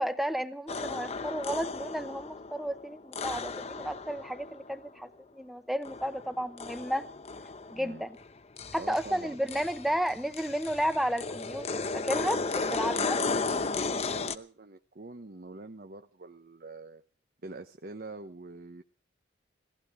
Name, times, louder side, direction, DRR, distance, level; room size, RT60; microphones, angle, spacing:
voice 1, 0.0-7.1 7.7-8.2 8.7-13.2, equal, ahead, 11 dB, 0.9 m, -32 dB
sound 1, 0.7-4.9 5.8-8.3 8.6-14.3, left 4 dB, 35° left, 0.8 m, -35 dB
voice 2, 7.7-8.1 8.8-9.4 12.3-17.0 17.4-18.8, right 2 dB, 50° right, 7 dB, 0.9 m, -45 dB
18.0 x 15.0 x 4.9 m, 0.38 s
head